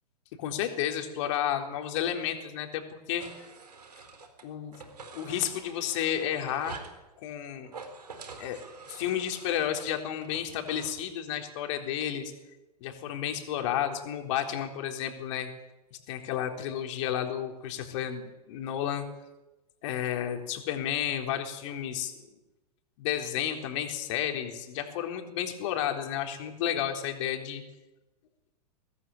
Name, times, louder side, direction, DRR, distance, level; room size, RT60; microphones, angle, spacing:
voice 1, 0.4-3.3 4.4-4.7 5.1-6.8 7.2-7.7 8.4-8.6 8.9-12.3 12.8-15.5 15.9-19.0 19.8-22.1 23.0-27.6, left 10 dB, 45° left, 4 dB, 3.9 m, -32 dB
sound 1, 3.2-4.4 4.7-7.0 7.6-10.9, right 4 dB, 75° right, 4.2 m, -46 dB
23.5 x 18.0 x 8.9 m, 1.0 s
figure-of-eight pair, 105°, 21 cm